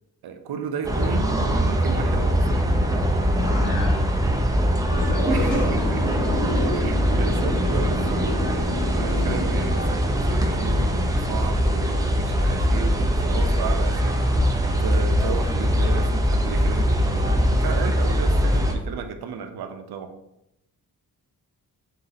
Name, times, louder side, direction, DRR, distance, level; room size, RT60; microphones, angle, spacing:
voice 1, 0.2-2.7 5.3-6.3 6.7-8.4 8.9-20.1, right 6 dB, 75° right, 6 dB, 0.6 m, -34 dB
sound 1, 0.8-18.7, equal, 10° right, 0.4 m, -22 dB
voice 2, 3.3-4.1 4.9-5.6, left 1 dB, 60° left, -3 dB, 1.4 m, -33 dB
sound 2, 4.9-10.1, left 1 dB, 90° left, 0.9 m, -31 dB
3.9 x 2.7 x 3.9 m, 0.87 s
wide cardioid pair, 115°, 38 cm